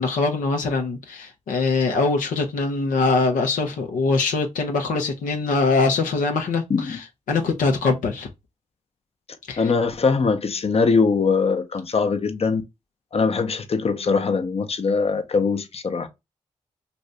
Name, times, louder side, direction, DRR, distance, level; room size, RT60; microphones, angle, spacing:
voice 1, 0.0-7.0 7.3-8.3 9.5-9.6, left 3 dB, 85° left, 0.6 m, -22 dB
voice 2, 9.6-12.6 13.1-16.1, left 4 dB, 50° left, 0.7 m, -22 dB
2.7 x 2.6 x 3.2 m
supercardioid pair, 40°, 14 cm